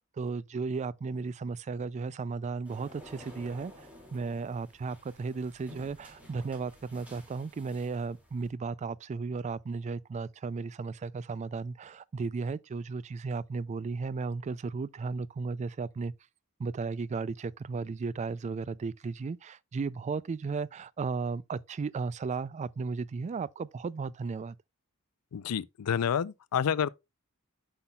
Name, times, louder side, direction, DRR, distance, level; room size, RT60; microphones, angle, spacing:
voice 1, 0.0-16.1 16.6-24.6, right 4 dB, 30° right, 0.3 m, -35 dB
sound 1, 2.6-8.5, equal, 5° right, 2.3 m, -53 dB
voice 2, 25.3-26.9, left 8 dB, 80° left, 0.4 m, -29 dB
8.0 x 5.7 x 2.3 m
head